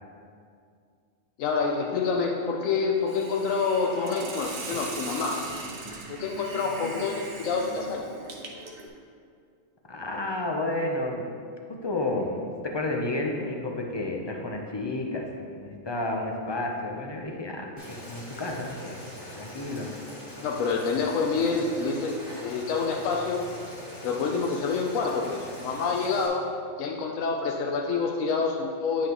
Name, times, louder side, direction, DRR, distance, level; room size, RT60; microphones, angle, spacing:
voice 1, 1.4-5.4 6.1-8.1 20.4-23.5 24.0-26.5 26.8-29.1, left 4 dB, 90° left, 1 dB, 1.0 m, -27 dB
Hiss, 3.1-8.9, right 2 dB, 55° right, 0.9 m, -39 dB
voice 2, 9.9-11.3 11.8-15.2 15.5-19.1 19.4-19.9, left 2 dB, 30° left, 1 dB, 0.5 m, -31 dB
Boiling, 17.8-26.3, equal, 60° left, 2.2 m, -42 dB
9.7 x 5.7 x 3.0 m, 2.3 s
omnidirectional pair, 1.3 m